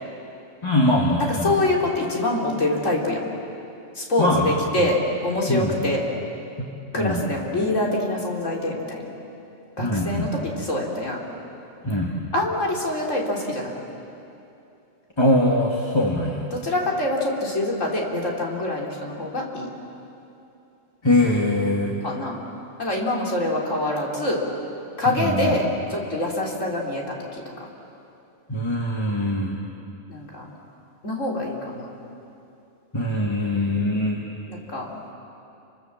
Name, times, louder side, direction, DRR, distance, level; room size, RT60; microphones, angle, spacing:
voice 1, 0.6-1.5 4.2-4.5 4.8-4.9 5.5-5.8 6.9-7.2 9.8-10.3 11.8-12.1 15.2-16.5 21.0-22.0 25.1-25.6 28.5-29.5 32.9-34.2, left 1 dB, 20° left, -1 dB, 2.1 m, -22 dB
voice 2, 1.3-3.2 4.0-6.0 6.9-9.1 9.8-11.2 12.3-13.7 16.5-19.7 22.0-22.4 22.8-24.4 25.0-27.4 30.1-30.4 31.0-31.9 33.6-33.9 34.5-34.9, left 1 dB, 75° left, -2 dB, 4.1 m, -25 dB
29.5 x 25.0 x 7.3 m, 2.7 s
omnidirectional pair, 1.3 m